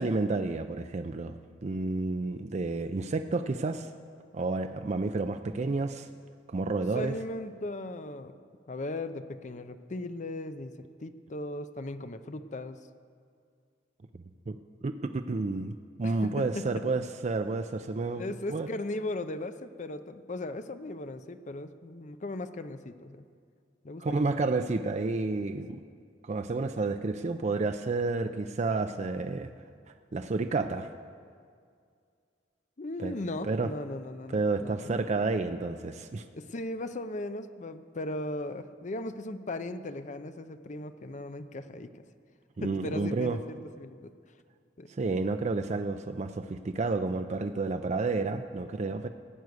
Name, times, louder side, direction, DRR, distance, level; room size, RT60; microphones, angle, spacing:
voice 1, 0.0-1.3 1.6-3.9 4.3-6.1 6.5-7.1 14.5-14.6 14.8-18.2 18.5-18.7 24.0-25.8 26.2-29.5 30.1-30.9 33.0-33.1 33.5-33.7 34.3-36.3 42.6-43.4 45.0-49.1, right 3 dB, 40° right, 8 dB, 0.4 m, -30 dB
voice 2, 6.9-8.3 8.7-10.7 11.0-12.8 16.0-16.6 18.1-23.2 23.8-24.0 25.7-25.8 32.8-34.9 36.3-42.0 42.6-44.1 44.8-44.9, left 2 dB, 45° left, 10 dB, 0.6 m, -37 dB
15.5 x 6.3 x 9.4 m, 2.2 s
head